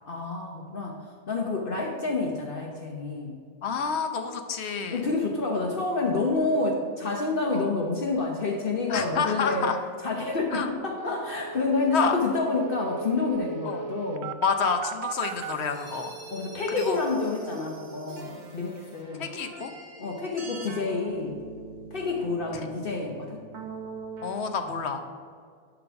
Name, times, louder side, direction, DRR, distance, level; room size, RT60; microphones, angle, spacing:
voice 1, 0.0-1.0 1.3-3.4 4.9-9.7 10.0-14.3 16.3-19.3 20.0-21.4 21.9-23.4, left 3 dB, 60° left, 0 dB, 1.1 m, -28 dB
voice 2, 3.6-5.0 7.5-7.6 8.9-9.8 10.5-10.9 11.9-12.2 13.6-13.8 14.4-16.1 16.8-17.0 19.2-19.7 24.2-25.0, left 5 dB, 90° left, 7 dB, 1.1 m, -28 dB
sound 1, 10.3-10.4 10.6-10.7 11.0-15.5, right 6 dB, 85° right, 0.8 m, -37 dB
sound 2, 15.1-24.5, right 3 dB, 45° right, 1.1 m, -43 dB
10.5 x 4.0 x 5.8 m, 2.1 s
omnidirectional pair, 1.1 m